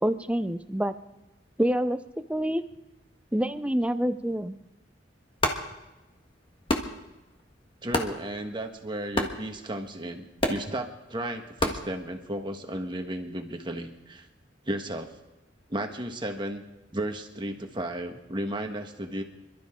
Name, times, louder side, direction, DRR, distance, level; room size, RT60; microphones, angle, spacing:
voice 1, 0.0-0.9 1.6-2.0 2.3-2.6 3.3-4.6, equal, 5° right, 11 dB, 0.5 m, -26 dB
sound 1, 5.3-12.6, left 1 dB, 30° left, 1.5 m, -34 dB
voice 2, 7.8-14.3 14.7-15.1 15.7-16.6 16.9-19.2, right 1 dB, 25° right, 4 dB, 1.4 m, -34 dB
26.5 x 12.5 x 3.8 m, 1.0 s
head